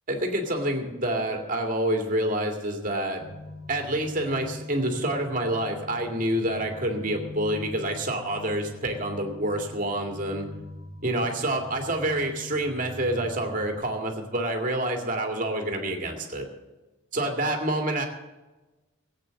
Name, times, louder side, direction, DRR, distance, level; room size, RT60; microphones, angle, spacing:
voice 1, 0.1-3.2 3.7-10.5 11.0-16.5 17.1-18.0, right 1 dB, 40° right, 3 dB, 2.2 m, -27 dB
sound 1, 3.2-13.8, left 2 dB, 80° left, 1.9 m, -43 dB
17.0 x 8.5 x 6.5 m, 1.1 s
head